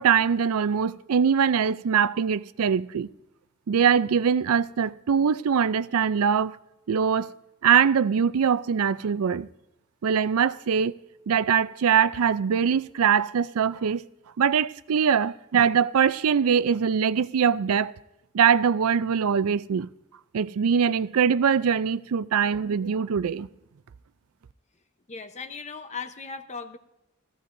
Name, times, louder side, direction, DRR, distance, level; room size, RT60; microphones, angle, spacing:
voice 1, 0.0-3.1 3.7-6.6 6.9-7.3 7.6-9.5 10.0-10.9 11.3-14.0 14.4-17.9 18.3-19.9 20.3-23.5, right 7 dB, 75° right, 0.4 m, -22 dB
voice 2, 25.1-26.8, left 5 dB, 30° left, 0.9 m, -37 dB
17.0 x 15.0 x 2.6 m
head